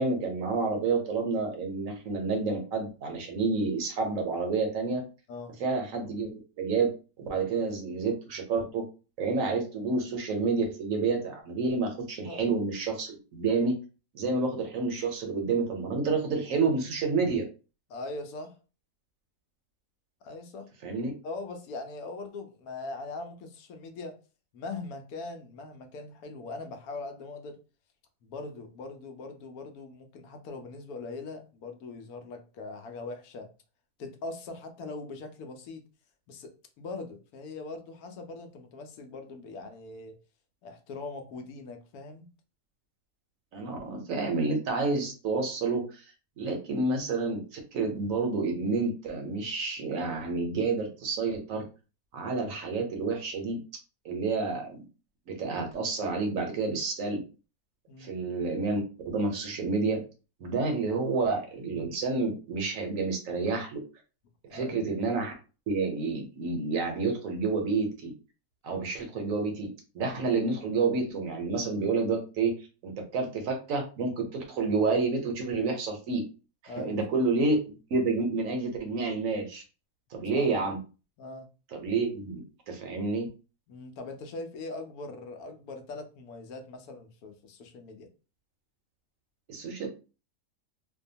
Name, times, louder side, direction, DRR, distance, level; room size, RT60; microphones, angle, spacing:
voice 1, 0.0-5.0 5.6-8.8 9.2-13.8 14.1-17.4 20.8-21.1 43.5-46.0 46.4-51.6 52.1-53.6 54.0-54.8 55.3-57.2 58.0-58.8 59.1-60.0 60.4-63.8 64.5-65.3 65.7-68.1 68.6-72.5 72.8-76.2 76.8-77.6 77.9-79.6 80.1-80.8 81.7-83.3 89.5-89.9, right 4 dB, 70° right, 1.0 m, -29 dB
voice 2, 17.9-18.6 20.2-20.7 21.2-24.2 24.5-27.6 28.2-33.5 34.0-35.8 36.3-36.5 36.8-40.2 40.6-42.3 57.9-58.1 64.5-64.8 76.7-77.0 80.4-80.5 81.2-81.5 83.7-88.1, left 3 dB, 80° left, 1.1 m, -41 dB
2.7 x 2.2 x 2.6 m
omnidirectional pair, 1.6 m